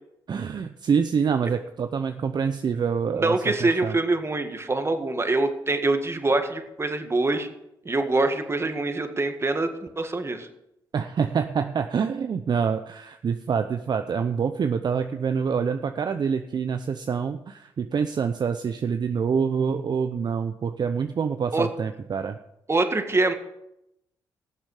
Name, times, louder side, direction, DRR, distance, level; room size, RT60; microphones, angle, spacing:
voice 1, 0.3-3.9 10.9-22.4, right 6 dB, 50° right, 8 dB, 0.7 m, -26 dB
voice 2, 3.2-7.5 7.9-10.5 21.5-21.7 22.7-23.3, right 2 dB, 30° right, 7 dB, 1.8 m, -24 dB
19.0 x 7.4 x 5.0 m, 0.83 s
supercardioid pair, 55°, 9 cm